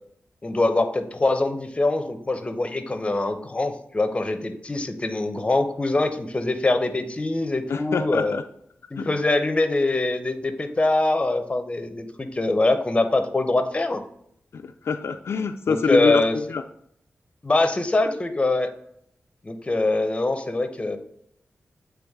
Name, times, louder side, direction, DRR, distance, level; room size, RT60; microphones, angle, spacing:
voice 1, 0.4-8.4 8.9-14.0 15.7-16.4 17.4-18.7 19.4-21.0, left 2 dB, 25° left, 7 dB, 0.7 m, -23 dB
voice 2, 7.7-8.4 9.0-9.1 14.5-16.2 16.5-16.6, left 5 dB, 70° left, 6 dB, 0.3 m, -25 dB
8.0 x 3.4 x 3.5 m, 0.70 s
wide cardioid pair, 105°, 5 cm